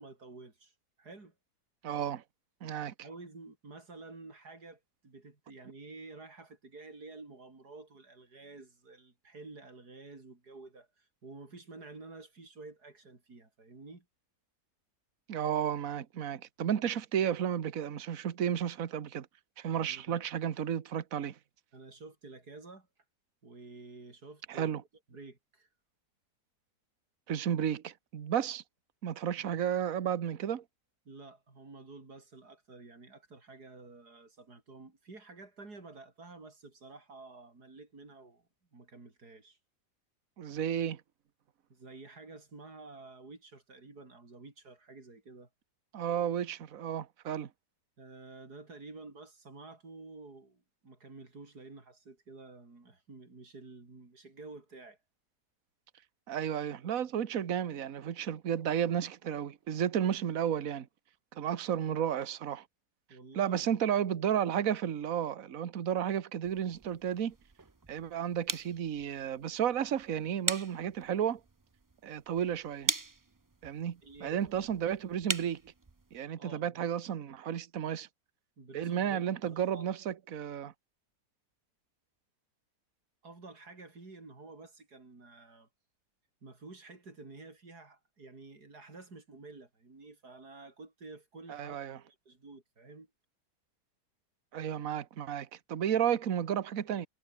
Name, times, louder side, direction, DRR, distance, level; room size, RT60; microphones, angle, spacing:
voice 1, 0.0-1.3 3.0-14.1 19.9-20.3 21.7-22.9 23.4-24.8 25.1-25.7 31.1-38.4 38.7-39.6 41.7-45.5 48.0-55.0 63.1-63.7 74.0-74.8 76.4-76.8 78.6-79.9 83.2-85.7 86.4-93.1, right 3 dB, 75° right, 5.2 m, -50 dB
voice 2, 1.8-2.2 2.6-2.9 15.3-19.3 19.6-21.4 24.5-24.8 27.3-28.6 29.0-30.6 40.4-41.0 45.9-47.5 56.3-60.9 61.3-62.6 63.3-67.3 67.9-71.4 72.0-72.9 73.6-75.7 76.1-78.1 78.7-80.7 91.5-92.0 94.5-97.1, right 9 dB, 60° right, 1.6 m, -32 dB
sound 1, 66.4-76.2, right 3 dB, 30° right, 0.3 m, -41 dB
omnidirectional pair, 1.7 m